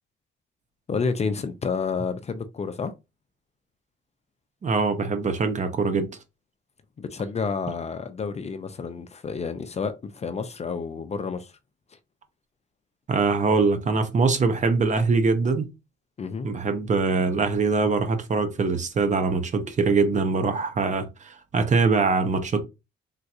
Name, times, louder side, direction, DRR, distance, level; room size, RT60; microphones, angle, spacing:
voice 1, 0.9-2.9 7.0-11.5 16.2-16.5, left 5 dB, 35° left, 0.5 m, -30 dB
voice 2, 4.6-6.1 13.1-15.7 16.4-22.6, right 4 dB, 40° right, 0.7 m, -23 dB
3.5 x 2.9 x 2.5 m
cardioid pair, 90°, 20 cm